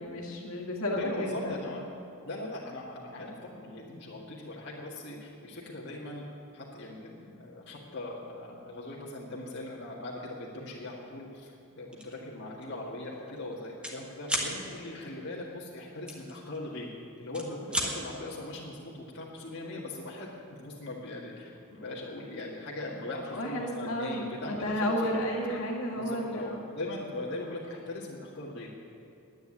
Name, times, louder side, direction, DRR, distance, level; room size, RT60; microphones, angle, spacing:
voice 1, 0.0-1.6 23.3-26.6, equal, 70° left, -1 dB, 2.2 m, -32 dB
voice 2, 1.0-1.8 2.2-6.2 6.5-16.9 17.2-20.3 20.6-25.1 26.0-28.7, left 2 dB, 50° left, -5 dB, 1.8 m, -40 dB
sound 1, 11.9-12.2 12.6-12.8 13.1-14.0 14.2-14.5 16.1-16.9 17.2-17.9, equal, 5° right, 1.5 m, -33 dB
10.5 x 9.5 x 9.8 m, 2.8 s
head